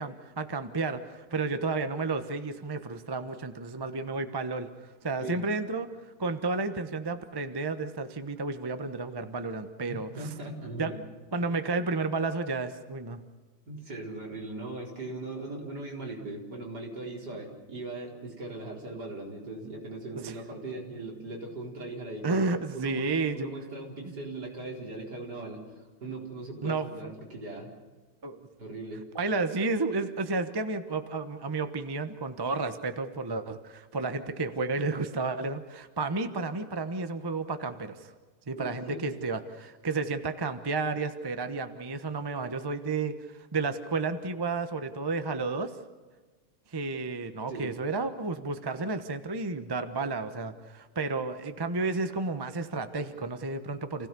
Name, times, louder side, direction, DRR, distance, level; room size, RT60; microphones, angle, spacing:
voice 1, 0.0-5.9 6.2-10.3 10.8-10.9 11.3-13.2 20.1-20.3 22.2-23.5 26.6-27.1 28.2-28.5 29.1-38.1 38.5-43.2 43.5-45.7 46.7-54.1, right 3 dB, 25° right, 8 dB, 0.5 m, -32 dB
voice 2, 9.9-11.0 13.7-22.5 22.7-27.7 28.6-29.1 38.5-39.2 47.5-47.7, right 2 dB, 45° right, -1 dB, 4.8 m, -39 dB
29.0 x 16.5 x 6.9 m, 1.3 s
omnidirectional pair, 2.4 m